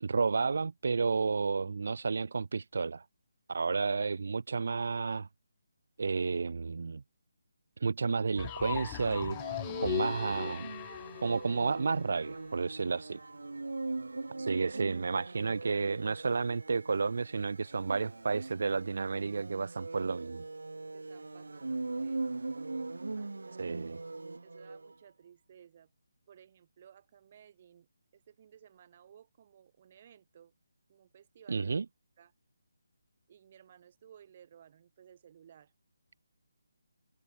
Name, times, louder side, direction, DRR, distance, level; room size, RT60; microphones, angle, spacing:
voice 1, 0.0-3.0 3.5-5.3 6.0-7.0 7.8-9.4 9.8-10.7 11.2-13.2 14.4-20.4 23.6-24.0 31.5-31.9, right 4 dB, 65° right, 0.3 m, -31 dB
sound 1, 8.3-24.9, right 3 dB, 85° right, 2.1 m, -41 dB
sound 2, 8.4-12.3, left 26 dB, 20° left, 0.4 m, -39 dB
voice 2, 20.9-22.5 23.2-23.8 24.4-25.9 26.3-27.9 28.1-30.5 30.9-31.7 32.2-32.3 33.3-35.7, right 9 dB, 35° right, 5.5 m, -58 dB
figure-of-eight pair, 160°, 0 cm